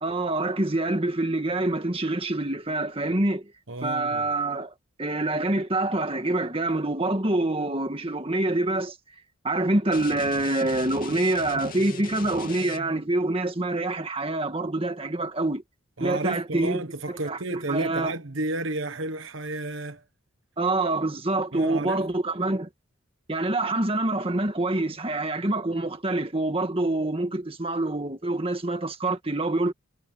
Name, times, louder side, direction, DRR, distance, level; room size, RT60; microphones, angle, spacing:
voice 1, 0.0-3.4 3.8-4.7 5.0-9.0 9.4-15.6 16.0-16.8 17.3-18.1 20.6-22.7 23.3-29.7, right 2 dB, 25° right, 1.9 m, -26 dB
voice 2, 3.7-4.3 16.0-20.0 21.5-22.0, right 2 dB, 65° right, 1.2 m, -32 dB
sound 1, 9.9-13.1, left 4 dB, 40° left, 2.8 m, -39 dB
head